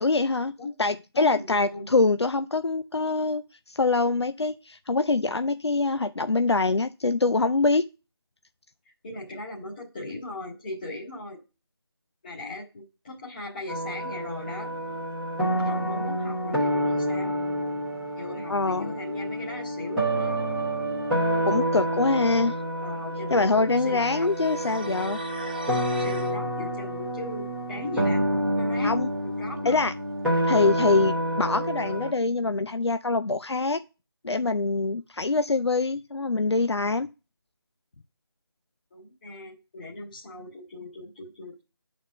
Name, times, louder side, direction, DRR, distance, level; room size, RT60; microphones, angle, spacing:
voice 1, 0.0-0.5 0.8-7.8 18.5-18.9 21.5-22.6 23.3-25.2 28.8-29.1 29.7-29.9 30.5-33.8 34.2-37.1, left 3 dB, 85° left, 11 dB, 0.5 m, -24 dB
voice 2, 1.1-1.9 9.0-11.4 12.2-14.7 15.6-17.3 18.1-20.4 22.8-23.5 23.8-24.3 26.0-28.2 28.5-28.9 29.4-29.9 38.9-41.6, left 2 dB, 20° left, -7 dB, 1.7 m, -38 dB
sound 1, 13.7-32.1, right 1 dB, ahead, 1.1 m, -28 dB
sound 2, 24.2-26.3, right 1 dB, 20° right, 0.6 m, -39 dB
8.7 x 4.3 x 5.8 m, 0.30 s
figure-of-eight pair, 165°, 14 cm